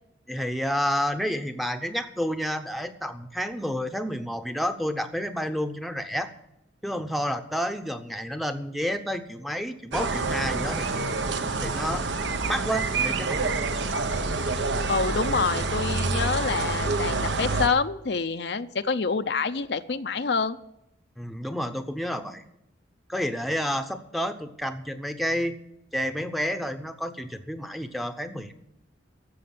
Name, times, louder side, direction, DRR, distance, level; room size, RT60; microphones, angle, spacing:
voice 1, 0.3-6.3 6.8-11.2 11.6-12.1 12.5-13.6 21.2-22.4 23.1-25.6 25.9-28.5, equal, ahead, 7 dB, 0.8 m, -30 dB
sound 1, 9.9-17.7, right 3 dB, 70° right, 1.0 m, -27 dB
voice 2, 14.9-20.6, left 4 dB, 60° left, 9 dB, 0.6 m, -27 dB
12.5 x 7.8 x 9.5 m, 0.84 s
head